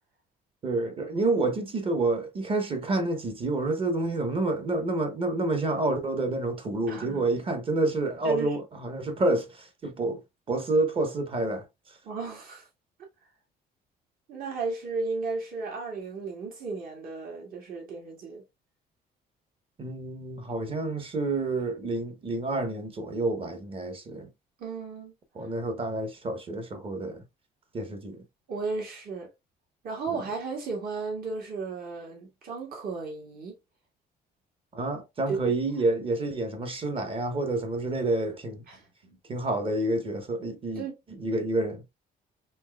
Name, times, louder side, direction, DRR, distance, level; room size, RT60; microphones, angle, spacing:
voice 1, 0.6-10.2 10.5-11.6 19.8-24.3 25.3-27.2 27.7-28.2 34.7-38.6 39.3-40.8 41.2-41.8, right 2 dB, 35° right, 0.9 m, -28 dB
voice 2, 6.9-7.2 8.2-8.6 12.0-12.7 14.3-18.4 24.6-25.1 28.5-29.3 29.8-33.5 35.3-35.6 38.7-38.9 40.8-40.9, right 4 dB, 60° right, 1.9 m, -34 dB
4.4 x 3.2 x 2.3 m
cardioid pair, 110°, 17 cm